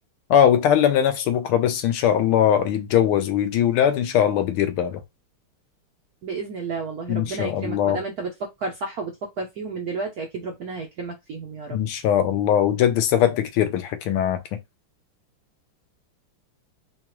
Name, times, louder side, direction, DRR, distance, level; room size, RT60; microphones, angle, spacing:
voice 1, 0.3-5.0 7.1-8.0 11.7-14.6, left 9 dB, 85° left, 1.6 m, -21 dB
voice 2, 6.2-11.8, right 4 dB, 70° right, 0.9 m, -32 dB
4.7 x 2.3 x 3.0 m
omnidirectional pair, 2.4 m